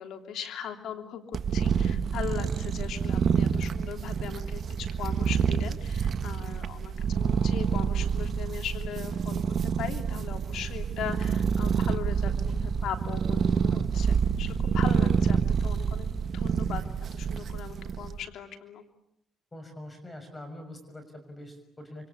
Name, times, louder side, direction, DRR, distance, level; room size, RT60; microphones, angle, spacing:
voice 1, 0.0-15.4 15.6-16.8 17.1-18.8, left 8 dB, 80° left, 6 dB, 3.2 m, -39 dB
sound 1, 1.3-18.2, right 6 dB, 55° right, 1.4 m, -27 dB
voice 2, 13.7-14.0 19.5-22.1, left 1 dB, 20° left, 7 dB, 6.4 m, -44 dB
27.0 x 24.5 x 8.5 m, 0.74 s
cardioid pair, 90°, 0 cm